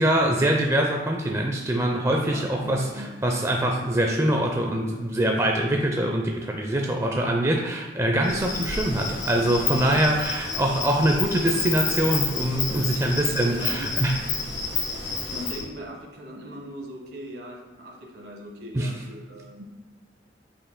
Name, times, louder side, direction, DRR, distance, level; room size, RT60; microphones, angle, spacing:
voice 1, 0.0-2.8 3.2-14.1 18.7-18.9, right 1 dB, 15° right, 1 dB, 0.5 m, -24 dB
voice 2, 2.2-3.1 9.7-10.0 11.4-11.5 12.7-12.9 13.5-13.9 14.3-14.4 15.3-19.6, equal, 65° right, 0 dB, 1.4 m, -39 dB
Insect, 8.2-15.6, left 4 dB, 80° left, 1.5 m, -30 dB
8.4 x 5.6 x 2.2 m, 1.3 s
head